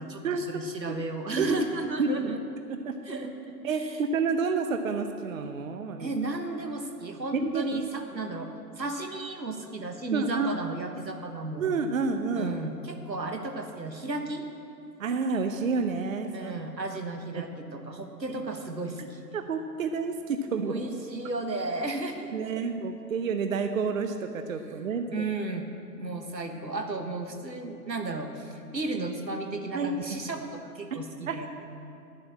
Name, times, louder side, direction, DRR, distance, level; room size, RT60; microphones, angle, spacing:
voice 1, 0.0-2.4 3.0-4.0 6.0-11.7 12.3-14.5 16.3-19.2 20.7-22.5 25.1-25.7 26.0-31.5, right 2 dB, 90° right, 5 dB, 1.4 m, -34 dB
voice 2, 3.6-6.1 7.3-7.8 10.1-10.5 11.6-12.6 15.0-16.5 17.3-17.5 18.3-18.4 19.3-20.8 22.3-25.2 29.7-29.9 30.2-30.3 30.9-31.0 31.3-31.4, right 5 dB, 55° right, 7 dB, 0.8 m, -29 dB
10.5 x 7.6 x 7.5 m, 2.5 s
figure-of-eight pair, 130°, 49 cm